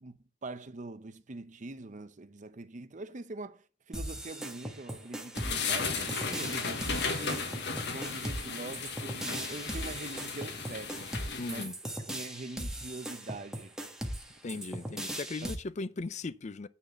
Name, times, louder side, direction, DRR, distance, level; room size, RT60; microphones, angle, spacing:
voice 1, 0.0-11.1 11.5-11.7 12.1-13.8 14.4-14.6 15.4-15.5, right 2 dB, 45° right, 0.8 m, -43 dB
sound 1, 3.9-15.6, right 1 dB, 5° right, 1.4 m, -39 dB
sound 2, 5.3-11.6, left 4 dB, 65° left, 1.5 m, -35 dB
voice 2, 11.4-11.7 14.4-16.7, left 3 dB, 40° left, 0.5 m, -38 dB
9.8 x 4.1 x 7.1 m
head